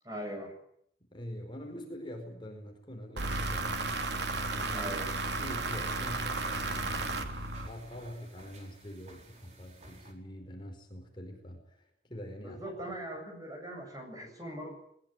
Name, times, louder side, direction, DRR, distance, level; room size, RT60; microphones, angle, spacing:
voice 1, 0.0-0.5 4.7-5.1 12.4-14.7, right 1 dB, 20° right, 3 dB, 7.7 m, -41 dB
voice 2, 1.1-4.0 4.6-4.9 5.3-7.4 7.7-12.7, equal, 25° left, 3 dB, 4.9 m, -44 dB
sound 1, 3.2-8.1, right 2 dB, 75° right, 2.9 m, -34 dB
sound 2, 4.0-10.1, right 2 dB, 40° right, 4.5 m, -54 dB
21.0 x 20.5 x 9.2 m, 0.70 s
head